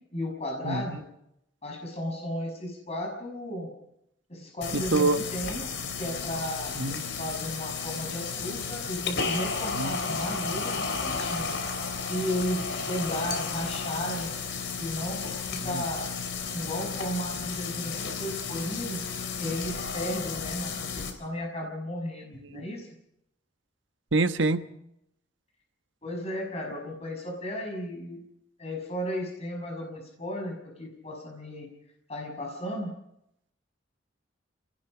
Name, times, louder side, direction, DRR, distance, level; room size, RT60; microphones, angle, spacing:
voice 1, 0.1-1.1 1.6-3.7 4.3-5.6 6.0-11.5 12.0-14.3 14.8-15.2 15.5-16.1 16.5-19.0 19.4-22.9 26.0-28.2 28.6-31.7 32.1-32.9, equal, 35° left, 1 dB, 6.2 m, -34 dB
voice 2, 0.6-1.0 4.7-5.2 6.8-7.0 9.7-9.9 15.7-15.8 19.4-19.5 22.5-22.6 24.1-24.7, right 3 dB, 90° right, 9 dB, 1.3 m, -26 dB
sound 1, 4.6-21.1, left 5 dB, 75° left, 3.7 m, -33 dB
28.5 x 19.0 x 5.0 m, 0.77 s
head